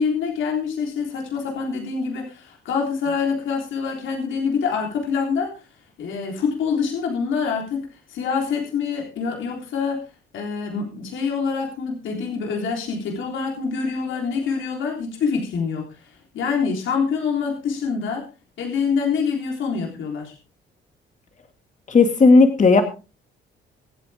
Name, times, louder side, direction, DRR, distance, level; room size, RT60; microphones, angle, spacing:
voice 1, 0.0-5.5 6.0-10.0 10.3-18.2 18.6-20.3, left 5 dB, 75° left, 1 dB, 3.6 m, -25 dB
voice 2, 21.9-22.8, left 3 dB, 40° left, 6 dB, 2.1 m, -13 dB
24.5 x 8.6 x 3.5 m, 0.32 s
cardioid pair, 90°, 20 cm